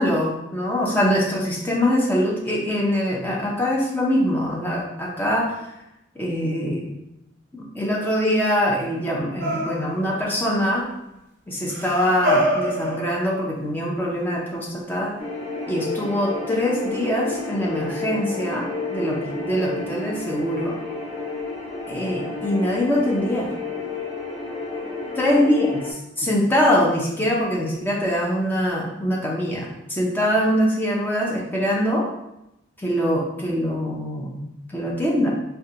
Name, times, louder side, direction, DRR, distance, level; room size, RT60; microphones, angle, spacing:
voice 1, 0.0-5.7 6.2-6.8 7.5-10.8 11.5-15.2 15.7-20.7 21.9-23.5 25.2-32.1 32.8-35.3, equal, 10° left, -3 dB, 0.5 m, -23 dB
sound 1, 9.4-10.2 11.7-13.6 15.0-15.1, equal, 50° right, 0.6 m, -25 dB
sound 2, 15.2-25.9, left 3 dB, 35° left, 1.0 m, -31 dB
3.7 x 2.2 x 2.8 m, 0.87 s
head